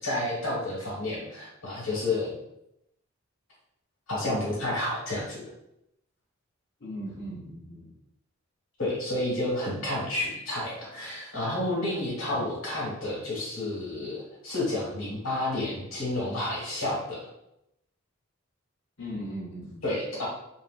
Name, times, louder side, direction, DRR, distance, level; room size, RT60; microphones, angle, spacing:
voice 1, 0.0-2.4 4.1-5.4 8.8-17.2 19.8-20.3, left 1 dB, 75° left, -5 dB, 1.5 m, -30 dB
voice 2, 6.8-7.9 19.0-19.9, equal, 55° left, -10 dB, 0.8 m, -38 dB
3.1 x 2.7 x 2.5 m, 0.82 s
head